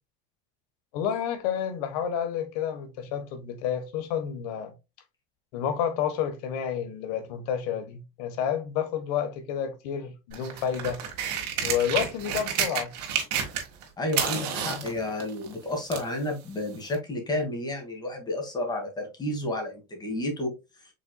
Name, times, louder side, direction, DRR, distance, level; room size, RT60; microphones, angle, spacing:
voice 1, 0.9-4.7 5.5-11.0 11.6-12.9 14.6-14.8, left 8 dB, 80° left, 1.2 m, -30 dB
sound 1, 10.3-13.8 14.1-16.1 16.9-17.0, right 8 dB, 90° right, 1.5 m, -30 dB
voice 2, 14.0-20.5, left 1 dB, 20° left, 2.1 m, -31 dB
5.4 x 4.0 x 2.2 m
supercardioid pair, 115°, 20 cm